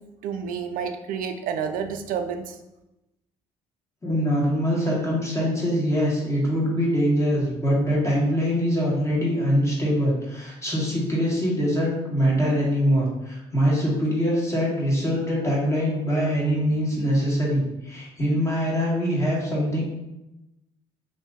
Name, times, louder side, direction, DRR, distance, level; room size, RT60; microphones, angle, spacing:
voice 1, 0.2-2.5, right 7 dB, 65° right, 7 dB, 0.4 m, -29 dB
voice 2, 4.0-19.8, equal, 20° left, -5 dB, 1.4 m, -23 dB
2.7 x 2.6 x 3.6 m, 0.95 s
supercardioid pair, 70°, 15 cm